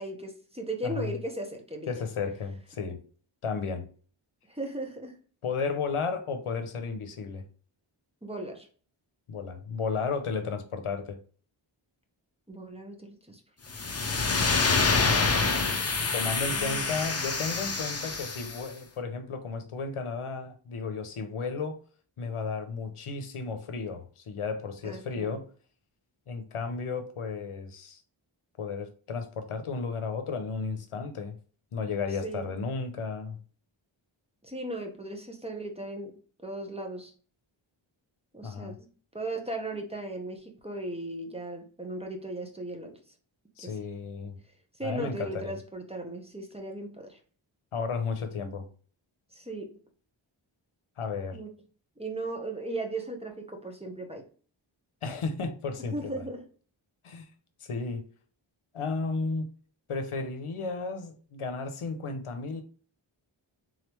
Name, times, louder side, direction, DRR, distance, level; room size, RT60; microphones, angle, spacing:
voice 1, 0.0-1.9 4.5-5.2 8.2-8.7 12.5-13.4 16.4-16.9 24.8-25.3 32.2-32.5 34.4-36.2 36.4-37.1 38.3-38.9 39.1-43.0 43.6-43.8 44.8-47.2 49.3-49.8 51.3-51.5 52.0-54.2 55.9-56.4, right 2 dB, 10° right, 1.1 m, -37 dB
voice 2, 1.9-3.0 3.4-3.8 5.4-7.4 9.3-11.2 16.1-21.8 22.2-25.4 26.3-28.0 28.6-31.3 31.7-33.4 38.4-38.8 43.6-44.4 44.8-45.5 47.7-48.7 51.0-51.4 55.0-56.3 57.0-57.3 57.6-58.0 58.7-59.5 59.9-62.6, left 4 dB, 80° left, 0.8 m, -33 dB
sound 1, 13.7-18.6, left 4 dB, 30° left, 0.8 m, -27 dB
3.8 x 3.2 x 3.0 m
cardioid pair, 45°, 50 cm